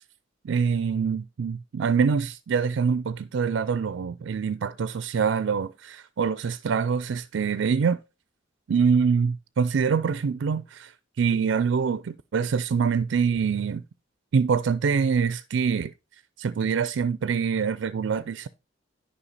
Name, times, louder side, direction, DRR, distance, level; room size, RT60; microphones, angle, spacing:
voice 1, 0.4-8.0 8.7-13.8 14.3-15.9 16.4-18.5, right 6 dB, 60° right, 0.4 m, -25 dB
9.9 x 5.5 x 4.1 m
head